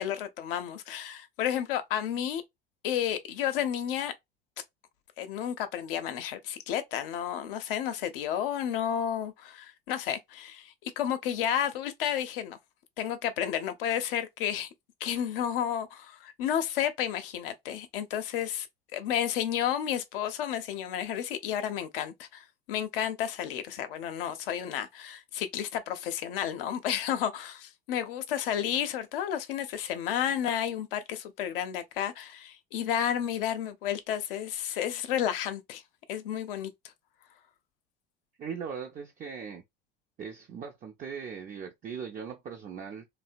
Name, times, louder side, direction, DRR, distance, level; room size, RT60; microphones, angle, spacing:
voice 1, 0.0-2.4 2.8-4.1 5.2-12.6 13.0-14.7 15.0-18.7 18.9-35.8 36.1-36.7, left 10 dB, 70° left, 0.6 m, -31 dB
voice 2, 38.4-39.6 40.2-43.1, right 6 dB, 30° right, 0.5 m, -39 dB
2.7 x 2.1 x 2.5 m
hypercardioid pair, 70°, 29 cm